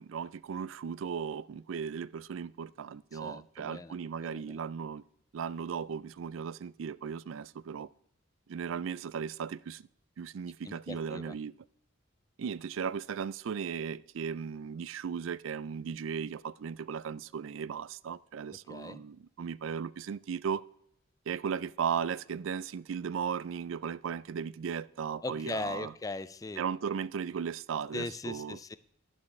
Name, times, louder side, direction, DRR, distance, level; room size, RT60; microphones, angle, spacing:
voice 1, 0.0-5.0 5.3-7.9 8.5-9.9 10.2-11.5 12.4-20.6 21.3-25.9 26.6-28.6, right 7 dB, 75° right, 0.4 m, -36 dB
voice 2, 3.1-3.9 4.2-4.6 10.7-11.4 18.7-19.0 25.2-26.6 27.9-28.8, left 3 dB, 20° left, 0.4 m, -39 dB
11.5 x 10.5 x 3.2 m
head